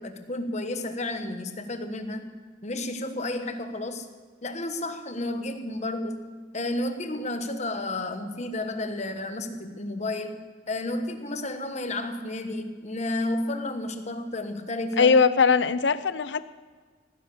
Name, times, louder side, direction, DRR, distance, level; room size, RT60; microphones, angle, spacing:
voice 1, 0.0-2.3 2.6-4.1 4.4-10.4 10.7-15.2, left 2 dB, 40° left, 8 dB, 1.2 m, -32 dB
voice 2, 15.0-16.5, left 5 dB, 80° left, 15 dB, 0.6 m, -20 dB
17.0 x 10.0 x 6.9 m, 1.5 s
head